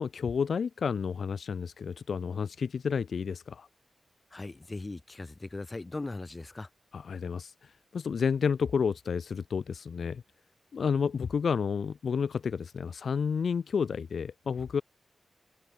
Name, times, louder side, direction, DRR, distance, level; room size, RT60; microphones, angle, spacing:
voice 1, 0.0-3.7 6.9-10.2 10.7-14.8, left 6 dB, 80° left, 0.7 m, -30 dB
voice 2, 4.3-6.7, left 2 dB, 35° left, 2.1 m, -39 dB
cardioid pair, 60°, 0 cm